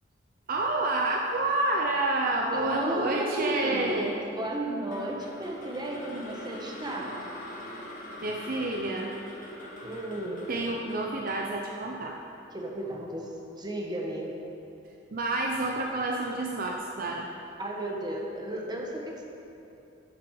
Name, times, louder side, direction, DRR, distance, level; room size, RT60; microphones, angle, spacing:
voice 1, 0.5-4.2 8.2-9.1 10.5-12.2 15.1-17.3, right 2 dB, 50° right, 0 dB, 0.6 m, -29 dB
voice 2, 2.5-7.1 9.8-10.5 12.5-14.3 17.6-19.3, right 1 dB, 20° right, -1 dB, 1.3 m, -33 dB
sound 1, 4.9-13.1, left 1 dB, 45° left, 1.5 m, -44 dB
12.0 x 7.5 x 4.8 m, 2.9 s
head